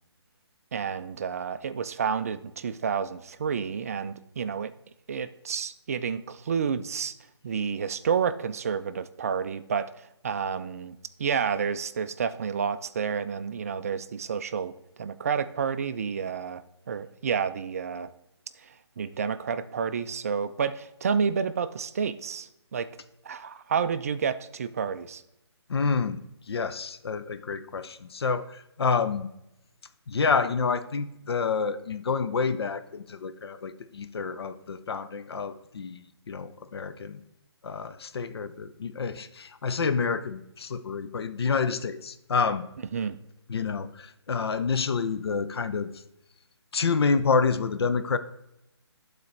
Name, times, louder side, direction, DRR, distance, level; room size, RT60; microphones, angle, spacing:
voice 1, 0.7-4.7 5.1-7.1 7.4-9.9 10.2-16.6 16.9-18.1 18.6-18.7 19.0-22.9 23.2-25.2 42.9-43.2, right 6 dB, 35° right, 12 dB, 0.4 m, -30 dB
voice 2, 25.7-26.2 26.5-29.3 30.1-37.2 37.6-42.7 43.5-46.0 46.7-48.2, left 5 dB, 65° left, 11 dB, 0.6 m, -28 dB
11.5 x 4.1 x 3.3 m, 0.85 s
figure-of-eight pair, 150°, 14 cm